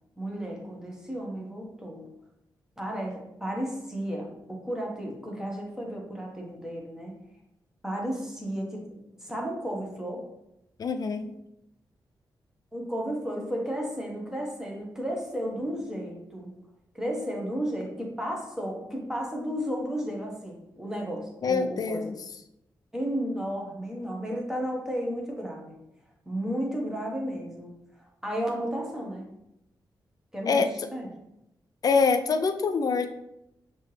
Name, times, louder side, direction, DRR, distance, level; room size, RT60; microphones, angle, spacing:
voice 1, 0.2-2.1 2.8-7.1 7.8-10.2 12.7-16.5 16.9-22.1 22.9-25.8 26.2-29.2 30.3-31.1, equal, 5° right, -1 dB, 1.3 m, -33 dB
voice 2, 10.8-11.3 21.4-22.2 30.5-30.7 31.8-33.1, left 5 dB, 55° left, 8 dB, 0.4 m, -25 dB
5.6 x 3.0 x 3.2 m, 0.85 s
cardioid pair, 80°, 8 cm